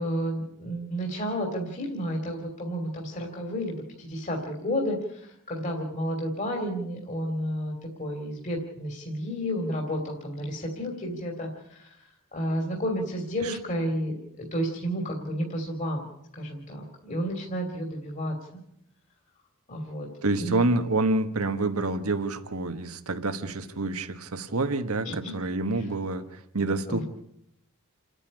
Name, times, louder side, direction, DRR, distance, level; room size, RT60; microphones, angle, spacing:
voice 1, 0.0-16.1 16.3-18.6 19.7-20.1 20.4-20.6 25.0-25.4 25.7-25.9 26.9-27.0, equal, 35° left, 3.0 m, -31 dB
voice 2, 20.2-27.0, right 2 dB, 90° right, 1.5 m, -28 dB
29.0 x 10.0 x 9.9 m
head